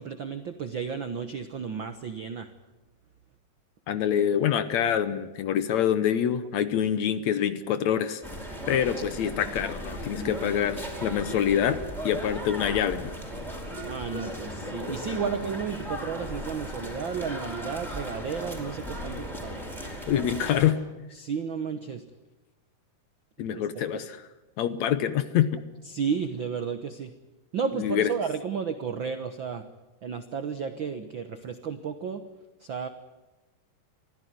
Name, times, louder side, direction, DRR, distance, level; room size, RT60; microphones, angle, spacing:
voice 1, 0.0-2.5 13.8-19.6 21.1-22.0 23.4-23.6 25.8-27.1 27.5-29.7 30.0-32.2 32.6-32.9, right 6 dB, 70° right, 10 dB, 1.1 m, -33 dB
voice 2, 3.9-8.2 8.7-13.1 20.1-20.8 23.4-24.3 24.6-25.6 27.8-28.1, left 9 dB, 65° left, 13 dB, 2.0 m, -26 dB
sound 1, 8.2-20.7, equal, ahead, 4.8 m, -36 dB
24.0 x 15.5 x 9.4 m, 1.1 s
omnidirectional pair, 3.9 m